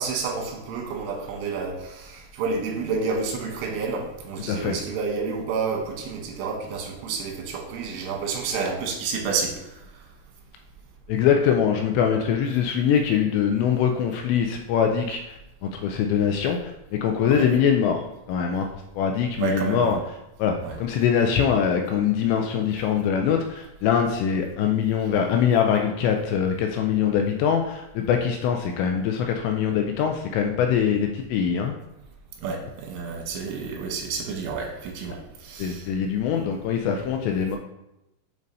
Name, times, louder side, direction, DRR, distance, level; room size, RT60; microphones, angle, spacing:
voice 1, 0.0-9.5 17.3-17.5 19.4-20.0 20.6-20.8 32.4-35.9, right 4 dB, 90° right, 1 dB, 3.5 m, -29 dB
voice 2, 11.1-18.7 19.0-20.0 20.4-31.8 35.6-37.6, left 7 dB, 85° left, 3 dB, 2.6 m, -23 dB
7.5 x 5.2 x 2.7 m, 0.90 s
omnidirectional pair, 5.4 m